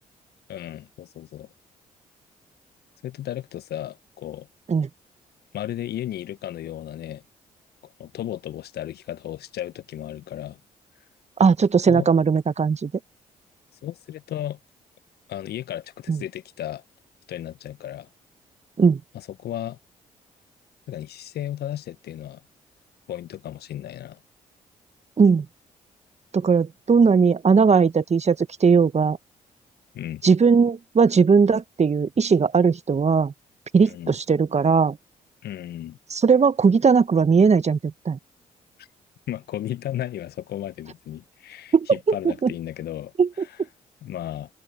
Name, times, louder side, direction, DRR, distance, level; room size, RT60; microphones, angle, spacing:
voice 1, 0.5-1.5 3.0-4.5 5.5-7.2 8.0-10.6 11.9-12.1 13.8-14.6 15.3-16.8 17.3-18.1 19.1-19.8 20.9-22.4 23.1-24.2 29.9-30.2 33.8-34.1 35.4-36.0 38.8-38.9 39.3-43.1 43.4-43.6 44.0-44.5, left 12 dB, 65° left, 1.3 m, -34 dB
voice 2, 11.4-12.9 16.1-16.2 18.8-19.0 25.2-25.4 26.3-29.2 30.2-33.3 33.7-35.0 36.1-38.2 41.7-42.1 42.4-42.5 43.2-43.3, right 5 dB, 40° right, 1.6 m, -18 dB
open air
hypercardioid pair, 40°, 18 cm